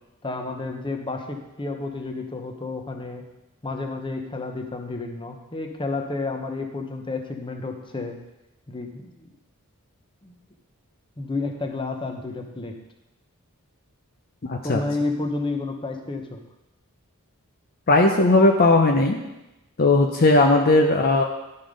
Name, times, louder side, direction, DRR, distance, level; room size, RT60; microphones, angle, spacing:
voice 1, 0.2-3.2 3.6-8.2 8.7-9.3 10.2-10.3 11.2-12.7 14.6-16.4, left 3 dB, 25° left, 4 dB, 1.0 m, -31 dB
voice 2, 14.4-14.8 17.9-19.2 19.8-21.2, left 2 dB, 45° left, 3 dB, 0.7 m, -17 dB
11.5 x 5.7 x 5.2 m, 0.96 s
head